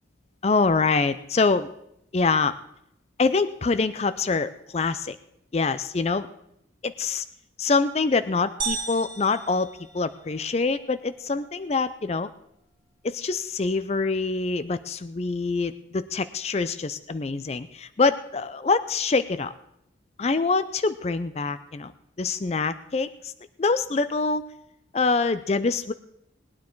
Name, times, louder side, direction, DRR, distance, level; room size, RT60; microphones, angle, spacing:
voice 1, 0.4-1.7 2.1-2.5 3.2-5.2 5.5-6.3 6.8-7.2 7.6-12.3 13.0-19.5 20.2-21.9 22.2-23.3 23.6-24.4 24.9-25.9, left 4 dB, 35° left, 13 dB, 0.4 m, -25 dB
sound 1, 8.6-10.5, right 4 dB, 25° right, 2.0 m, -34 dB
19.5 x 9.5 x 4.6 m, 0.77 s
head